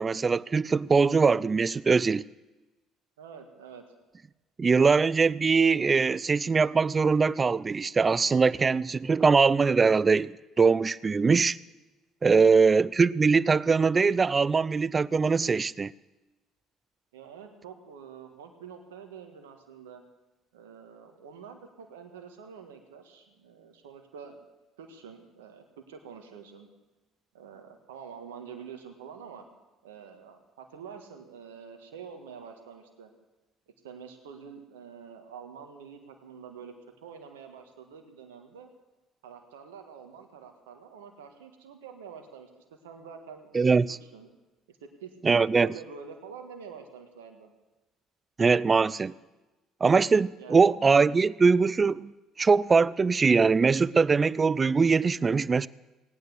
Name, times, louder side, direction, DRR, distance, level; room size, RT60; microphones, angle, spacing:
voice 1, 0.0-2.2 4.6-11.6 12.2-15.9 43.5-44.0 45.2-45.7 48.4-49.1 49.8-52.1 52.4-55.7, right 4 dB, 30° right, 0.5 m, -22 dB
voice 2, 3.2-3.8 12.3-12.7 17.1-20.0 20.5-24.5 24.8-26.7 27.3-29.4 29.8-33.1 33.8-36.7 37.0-38.7 39.2-43.7 44.1-44.3 44.7-47.5 50.4-50.8, right 6 dB, 90° right, 1.7 m, -46 dB
18.5 x 9.4 x 8.1 m
hypercardioid pair, 65°, 0 cm